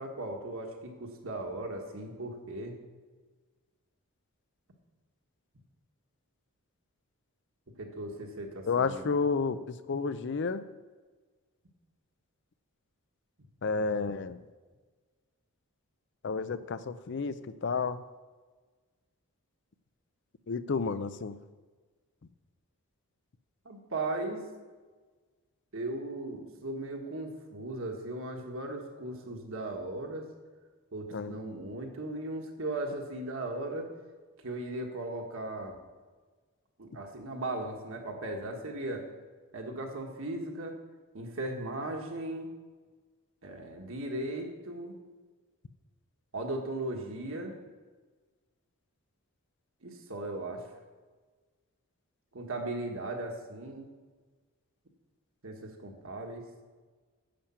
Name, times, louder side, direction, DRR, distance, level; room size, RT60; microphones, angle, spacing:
voice 1, 0.0-2.8 7.8-9.1 23.6-24.4 25.7-30.2 30.9-33.9 34.4-35.8 36.8-39.0 39.5-40.8 41.1-42.5 43.4-44.9 46.3-47.5 49.8-50.6 52.3-53.9 55.4-56.4, right 2 dB, 60° right, 2 dB, 1.6 m, -37 dB
voice 2, 8.7-10.6 13.6-14.4 16.2-18.0 20.5-21.4 31.1-31.3, left 4 dB, 55° left, 13 dB, 0.5 m, -31 dB
10.0 x 7.3 x 5.8 m, 1.4 s
head